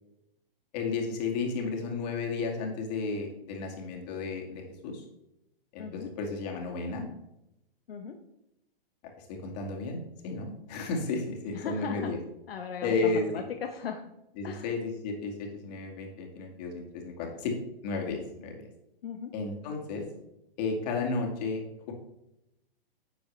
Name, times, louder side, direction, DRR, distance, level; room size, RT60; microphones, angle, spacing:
voice 1, 0.7-5.0 5.7-7.1 9.2-10.0 10.2-12.2 12.8-13.4 14.4-17.6 17.8-18.6 19.3-20.0 20.6-21.6 21.9-22.0, left 4 dB, 45° left, 2 dB, 2.2 m, -33 dB
voice 2, 5.8-6.1 7.9-8.2 11.5-12.1 12.5-14.0 14.4-14.7 19.0-19.3, left 6 dB, 75° left, 4 dB, 1.1 m, -37 dB
10.5 x 7.1 x 3.3 m, 0.87 s
hypercardioid pair, 135°, 30 cm